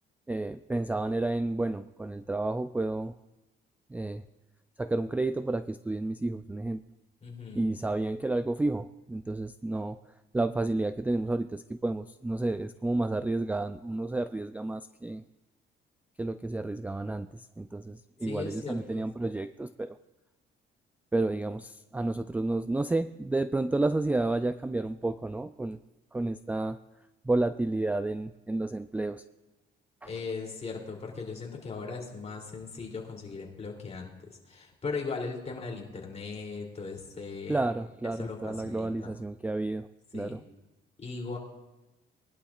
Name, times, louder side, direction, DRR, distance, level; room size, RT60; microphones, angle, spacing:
voice 1, 0.3-3.1 3.9-4.2 4.8-6.8 7.5-10.0 10.3-15.2 16.2-20.0 21.1-25.8 26.1-26.8 27.2-29.2 30.0-30.1 37.5-39.9 40.1-40.4, right 2 dB, 10° right, 12 dB, 0.3 m, -31 dB
voice 2, 7.2-7.7 18.2-19.0 30.0-37.6 38.2-39.1 40.1-40.4 41.0-41.4, left 4 dB, 35° left, -1 dB, 3.0 m, -38 dB
20.0 x 11.5 x 2.4 m, 1.0 s
cardioid pair, 90°, 20 cm